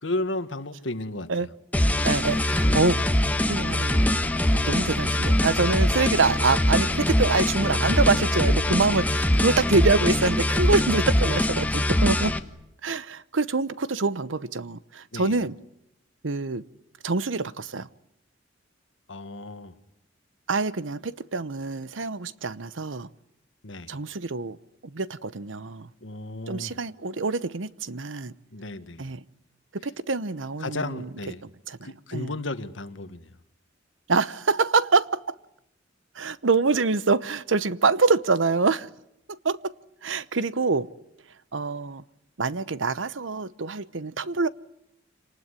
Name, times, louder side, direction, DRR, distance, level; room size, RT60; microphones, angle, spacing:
voice 1, 0.0-1.5 2.7-2.9 15.1-15.4 19.1-19.7 23.6-24.0 26.0-26.8 28.5-29.1 30.6-31.4 31.8-33.4, left 2 dB, 75° left, 1.8 m, -33 dB
sound 1, 1.7-12.4, left 1 dB, 10° left, 1.3 m, -23 dB
voice 2, 2.0-3.1 3.5-4.1 4.5-12.3 12.8-15.6 16.2-16.6 17.0-17.9 20.5-23.1 23.9-24.6 24.8-25.9 26.5-28.3 29.0-29.2 29.7-31.1 31.4-32.3 34.1-35.4 36.1-38.9 39.3-39.7 40.0-40.9 41.5-42.0 42.4-44.5, right 4 dB, 85° right, 0.9 m, -25 dB
27.0 x 19.5 x 9.8 m
head